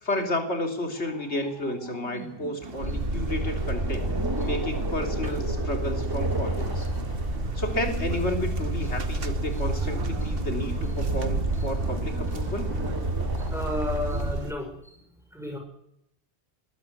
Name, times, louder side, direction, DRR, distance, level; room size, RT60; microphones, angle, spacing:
voice 1, 0.0-4.1 4.4-6.9 7.5-12.7, left 1 dB, 90° left, 4 dB, 3.5 m, -31 dB
sound 1, 1.0-8.2 8.8-14.1, right 2 dB, 20° right, 1.5 m, -39 dB
sound 2, 2.6-14.5, right 4 dB, 60° right, 1.4 m, -39 dB
Boat Water vehicle, 2.8-14.4, right 1 dB, 90° right, 3.0 m, -29 dB
voice 2, 13.5-15.0 15.3-15.6, left 1 dB, ahead, 3 dB, 6.2 m, -32 dB
21.0 x 12.5 x 9.8 m, 0.75 s
omnidirectional pair, 1.1 m